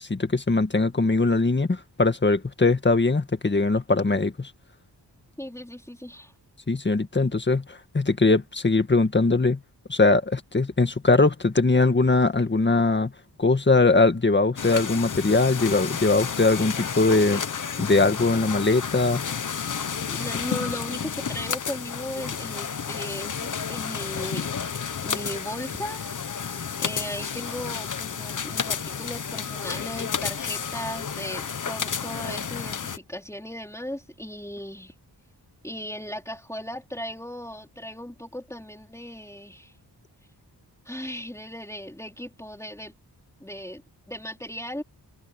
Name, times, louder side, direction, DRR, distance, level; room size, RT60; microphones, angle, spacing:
voice 1, 0.0-4.5 6.7-9.6 9.9-13.1 13.4-17.4 17.8-19.2, left 3 dB, 25° left, 1.9 m, -21 dB
voice 2, 5.4-6.3 20.1-24.6 25.0-26.5 26.8-34.9 35.6-39.7 40.8-42.9 43.4-44.8, equal, 5° left, 4.6 m, -37 dB
sound 1, 14.6-33.0, left 6 dB, 45° left, 1.1 m, -31 dB
wide cardioid pair, 145°, 41 cm